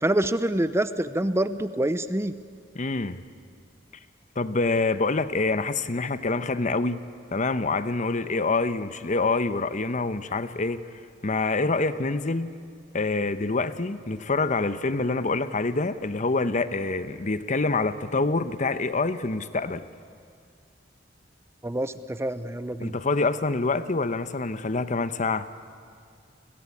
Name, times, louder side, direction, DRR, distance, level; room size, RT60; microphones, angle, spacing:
voice 1, 0.0-2.3 21.6-23.0, right 1 dB, 15° right, 13 dB, 0.7 m, -26 dB
voice 2, 2.7-3.2 4.4-7.0 7.3-10.8 11.2-12.5 12.9-19.8 22.8-25.5, left 3 dB, 40° left, 12 dB, 0.9 m, -26 dB
30.0 x 21.5 x 8.6 m, 2.3 s
head